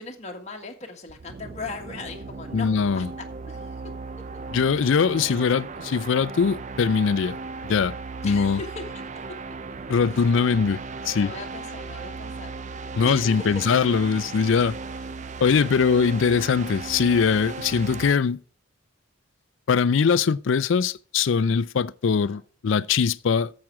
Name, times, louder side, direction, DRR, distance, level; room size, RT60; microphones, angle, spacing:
voice 1, 0.0-2.7 2.9-3.1 3.5-3.9 5.2-5.3 8.2-9.0 11.2-12.7 13.0-13.5 22.2-22.4, left 3 dB, 35° left, 1.6 m, -38 dB
sound 1, 1.1-18.1, right 4 dB, 35° right, 0.5 m, -37 dB
voice 2, 2.5-3.1 4.5-7.4 7.6-7.9 8.2-8.6 9.9-10.8 11.1-11.3 13.0-14.8 15.4-18.4 19.7-23.5, left 6 dB, 65° left, 0.4 m, -22 dB
12.0 x 7.5 x 4.7 m
head